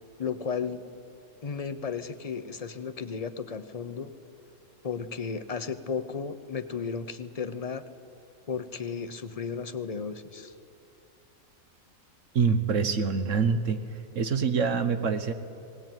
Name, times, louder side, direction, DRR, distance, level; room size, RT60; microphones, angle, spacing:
voice 1, 0.2-0.8 1.4-4.1 4.8-7.8 8.5-10.5, left 6 dB, 35° left, 11 dB, 0.7 m, -34 dB
voice 2, 12.3-13.8 14.1-15.3, right 5 dB, 70° right, 9 dB, 1.4 m, -25 dB
18.5 x 18.5 x 9.1 m, 2.8 s
omnidirectional pair, 1.3 m